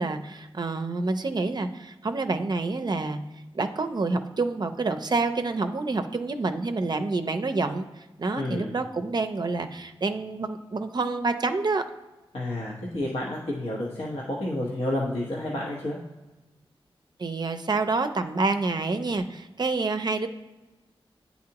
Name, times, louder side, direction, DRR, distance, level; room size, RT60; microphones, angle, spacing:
voice 1, 0.0-3.2 3.5-11.8 17.2-20.3, right 3 dB, 45° right, 7 dB, 0.5 m, -28 dB
voice 2, 8.3-8.7 12.3-16.0, left 1 dB, 80° left, -5 dB, 1.0 m, -30 dB
9.4 x 4.1 x 2.9 m, 1.1 s
wide cardioid pair, 85°, 10 cm